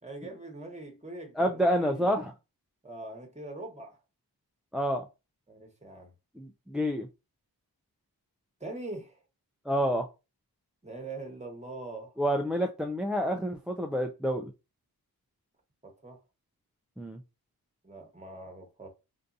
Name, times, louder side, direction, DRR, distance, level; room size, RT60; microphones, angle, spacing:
voice 1, 0.0-2.2 2.8-4.0 5.5-6.1 8.6-9.2 10.8-12.1 15.8-16.2 17.8-18.9, right 2 dB, 15° right, 1.2 m, -42 dB
voice 2, 1.4-2.3 4.7-5.1 6.4-7.1 9.7-10.1 12.2-14.5 17.0-17.2, equal, ahead, 0.3 m, -28 dB
3.6 x 2.6 x 2.6 m
wide cardioid pair, 85°, 38 cm